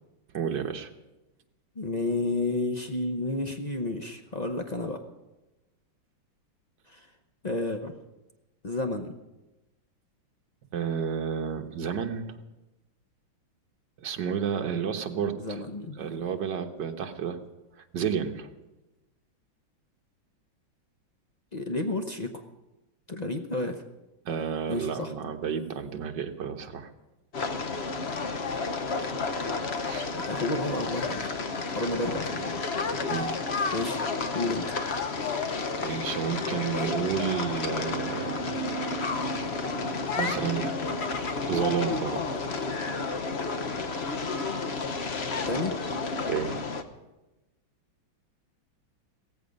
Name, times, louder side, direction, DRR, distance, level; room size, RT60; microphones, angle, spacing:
voice 1, 0.3-0.9 10.7-12.3 14.0-15.6 16.0-17.4 17.8-18.5 24.2-26.9 29.8-30.0 33.1-33.4 35.8-38.6 40.2-40.8 41.5-42.3 46.3-46.6, right 7 dB, 60° right, 5 dB, 1.7 m, -31 dB
voice 2, 1.7-5.0 6.9-7.1 7.4-7.9 8.6-9.1 15.3-16.0 21.5-22.4 23.1-23.8 24.7-25.1 30.3-31.3 31.7-32.6 33.1-33.2 33.7-34.0 34.3-34.7 45.5-45.8, left 2 dB, 60° left, 4 dB, 0.4 m, -31 dB
sound 1, 27.3-46.8, left 3 dB, 45° left, 0.9 m, -31 dB
17.0 x 15.0 x 5.3 m, 1.0 s
omnidirectional pair, 2.2 m